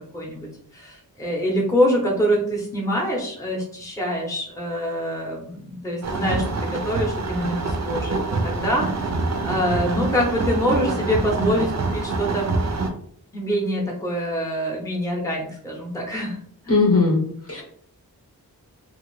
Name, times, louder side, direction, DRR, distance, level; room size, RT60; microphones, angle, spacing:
voice 1, 0.1-9.0 9.4-12.6 13.3-16.4 16.6-16.8, equal, 10° left, -1 dB, 0.7 m, -25 dB
sound 1, 6.0-12.9, right 3 dB, 45° right, 0.5 m, -26 dB
voice 2, 16.7-17.2 17.5-17.6, left 3 dB, 40° left, -1 dB, 0.8 m, -18 dB
2.6 x 2.4 x 3.1 m, 0.62 s
wide cardioid pair, 85°, 38 cm